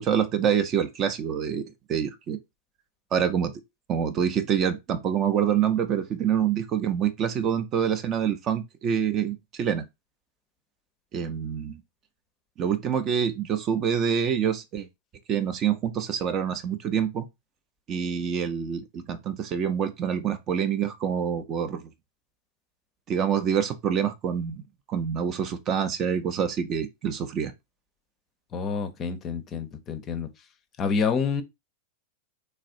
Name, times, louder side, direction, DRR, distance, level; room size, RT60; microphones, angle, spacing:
voice 1, 0.0-1.6 1.9-2.4 3.1-3.5 3.9-9.8 11.1-11.8 12.6-14.9 15.3-17.2 17.9-21.8 23.1-24.6 24.9-27.5, right 8 dB, 30° right, 0.4 m, -26 dB
voice 2, 28.5-30.3 30.8-31.4, left 5 dB, 30° left, 0.5 m, -28 dB
3.1 x 2.3 x 2.7 m
figure-of-eight pair, 90°, 0 cm